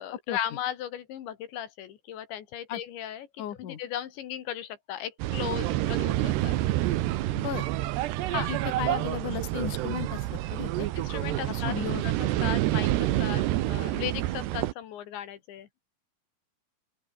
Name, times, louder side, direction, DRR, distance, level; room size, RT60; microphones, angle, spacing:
voice 1, 0.0-3.3 3.6-6.6 8.3-8.5 8.9-9.1 11.0-11.7 12.0-12.1 12.4-15.7, left 10 dB, 70° left, 4.0 m, -36 dB
voice 2, 3.4-3.8 7.3-7.6 8.3-10.9 11.5-12.0, left 10 dB, 50° left, 2.8 m, -35 dB
sound 1, 5.2-14.7, right 15 dB, 70° right, 2.9 m, -28 dB
open air
omnidirectional pair, 5.6 m